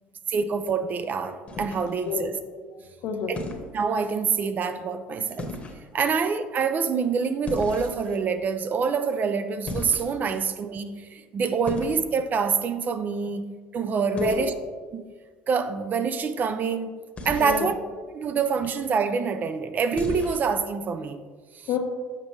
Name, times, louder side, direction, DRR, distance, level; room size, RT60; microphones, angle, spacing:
voice 1, 0.3-2.4 3.3-3.4 3.7-5.5 5.9-14.5 14.9-15.0 15.5-17.0 17.3-17.7 18.1-21.2 21.5-21.7, right 5 dB, 40° right, 0.4 m, -26 dB
sound 1, 1.5-2.1 3.3-3.7 5.4-5.8 7.5-8.2 9.7-10.4 11.7-12.0 14.2-14.4 17.2-17.7 19.9-20.5, left 2 dB, 30° left, 1.1 m, -35 dB
voice 2, 2.7-3.3 14.1-14.5 17.4-17.7 21.7-21.8, left 7 dB, 70° left, 0.9 m, -29 dB
7.3 x 5.1 x 3.2 m
supercardioid pair, 85°, 4 cm